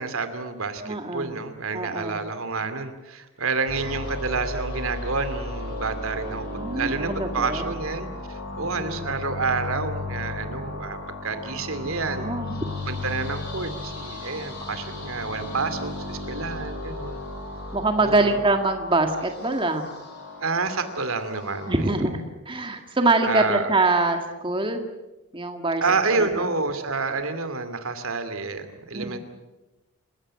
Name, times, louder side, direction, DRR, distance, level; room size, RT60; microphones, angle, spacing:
voice 1, 0.0-6.5 6.7-12.3 12.9-17.2 18.0-18.4 20.4-21.9 23.2-23.7 25.8-29.2, right 4 dB, 75° right, 9 dB, 2.6 m, -29 dB
voice 2, 0.9-1.3 1.7-2.2 6.5-7.7 8.5-9.1 12.0-12.5 17.7-19.9 21.7-24.9 25.3-25.8 26.2-26.5 28.9-29.2, right 2 dB, 25° right, 5 dB, 1.8 m, -24 dB
sound 1, 3.7-21.9, left 2 dB, 50° left, 7.7 m, -35 dB
28.5 x 16.0 x 8.7 m, 1.1 s
head